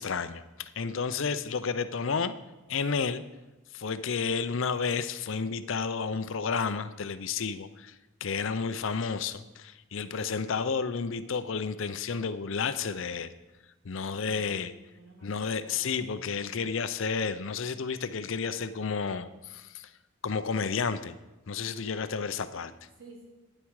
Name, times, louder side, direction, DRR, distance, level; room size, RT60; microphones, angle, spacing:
voice 1, 0.0-2.3 2.7-3.2 3.7-7.9 8.2-13.3 13.8-14.7 15.2-19.9 20.2-21.2 21.5-22.7, left 5 dB, 65° left, 13 dB, 0.6 m, -31 dB
voice 2, 14.1-16.0 23.0-23.3, right 2 dB, 80° right, -2 dB, 3.4 m, -53 dB
12.0 x 9.9 x 4.8 m, 1.1 s
head